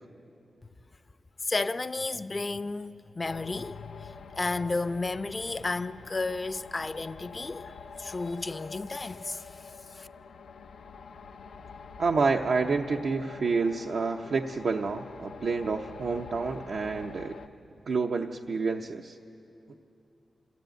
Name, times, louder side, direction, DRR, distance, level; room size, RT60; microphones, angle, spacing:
voice 1, 1.4-10.1, left 3 dB, 35° left, 0.6 m, -33 dB
sound 1, 3.2-17.5, left 5 dB, 90° left, 0.7 m, -46 dB
voice 2, 12.0-17.4 17.9-19.2, right 4 dB, 70° right, 0.8 m, -28 dB
24.5 x 15.5 x 9.2 m
cardioid pair, 70°, 0 cm